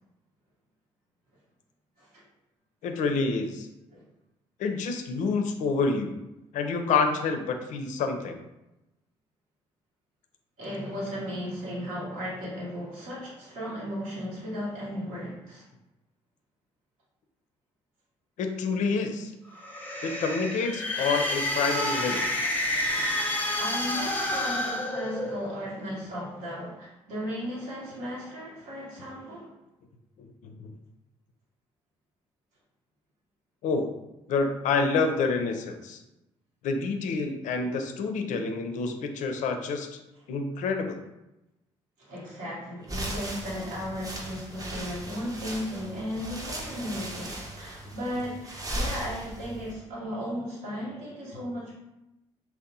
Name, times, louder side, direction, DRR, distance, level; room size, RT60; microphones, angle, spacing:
voice 1, 2.8-3.7 4.6-6.1 6.5-8.4 18.4-19.3 20.0-22.3 30.2-30.7 33.6-33.9 34.3-36.0 36.6-40.0 40.3-41.0, left 4 dB, 65° left, 6 dB, 0.4 m, -28 dB
voice 2, 10.6-15.7 23.6-29.5 42.0-51.8, equal, 75° right, -5 dB, 0.9 m, -35 dB
sound 1, 19.5-25.6, left 1 dB, 15° left, 0.7 m, -29 dB
sound 2, 42.8-49.7, right 1 dB, 25° right, 0.7 m, -37 dB
2.6 x 2.0 x 2.7 m, 0.94 s
hypercardioid pair, 50°, 14 cm